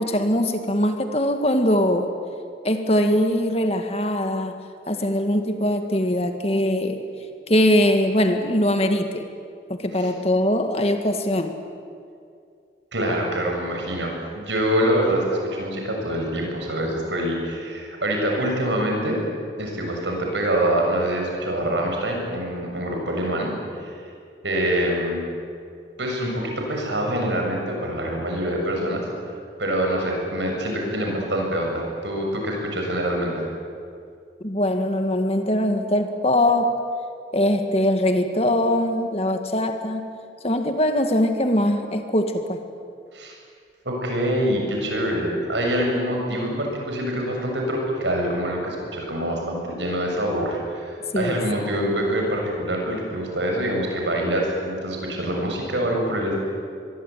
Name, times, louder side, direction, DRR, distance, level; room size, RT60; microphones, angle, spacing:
voice 1, 0.0-2.1 2.6-4.6 4.9-7.0 7.5-9.3 9.7-11.6 34.4-36.8 37.3-40.1 40.4-42.6 51.1-51.4, left 1 dB, 35° left, 6 dB, 1.9 m, -22 dB
voice 2, 12.9-19.2 19.6-23.5 23.8-24.0 24.4-25.2 26.0-29.0 29.6-33.5 43.1-43.4 43.9-56.4, right 1 dB, 80° right, 1 dB, 7.2 m, -25 dB
24.5 x 22.0 x 9.3 m, 2.3 s
head